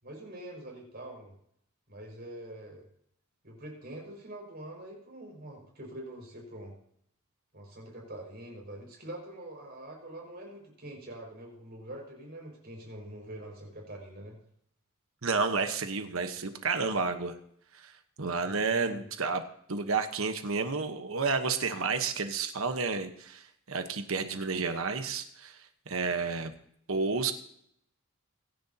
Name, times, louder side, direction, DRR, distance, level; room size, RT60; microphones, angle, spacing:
voice 1, 0.0-1.3 1.9-2.9 3.4-6.7 7.5-14.4 18.4-19.0, right 1 dB, 50° right, 0 dB, 5.7 m, -45 dB
voice 2, 15.2-17.3 17.7-17.9 18.2-19.4 19.7-26.5 26.9-27.3, right 4 dB, 75° right, 7 dB, 1.2 m, -31 dB
24.5 x 10.5 x 2.9 m, 0.70 s
head